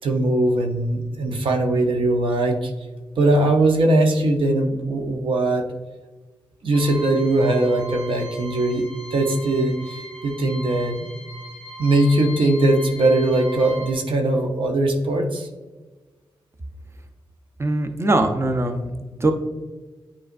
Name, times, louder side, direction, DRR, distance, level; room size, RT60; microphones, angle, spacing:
voice 1, 0.0-2.7 3.2-5.6 6.6-8.9 9.1-11.1 11.8-15.5, right 2 dB, 75° right, 2 dB, 0.8 m, -20 dB
sound 1, 6.7-13.9, equal, 15° left, 1.6 m, -39 dB
voice 2, 17.6-19.3, right 2 dB, 30° right, 5 dB, 0.8 m, -22 dB
9.1 x 4.2 x 2.6 m, 1.3 s
cardioid pair, 45°, 9 cm